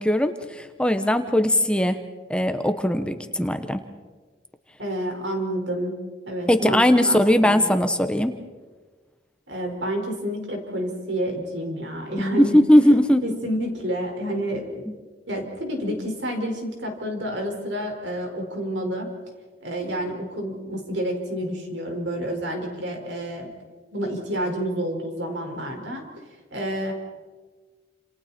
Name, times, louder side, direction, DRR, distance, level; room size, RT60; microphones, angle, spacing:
voice 1, 0.0-2.0 2.3-3.8 6.5-8.3 12.4-13.2 14.9-15.0, left 1 dB, 5° left, 8 dB, 1.0 m, -19 dB
voice 2, 4.8-6.0 6.3-7.7 9.5-12.6 13.2-14.8 15.3-19.1 19.6-23.5 23.9-26.0 26.5-26.9, equal, 80° right, 2 dB, 5.1 m, -29 dB
29.5 x 27.5 x 4.4 m, 1.4 s
head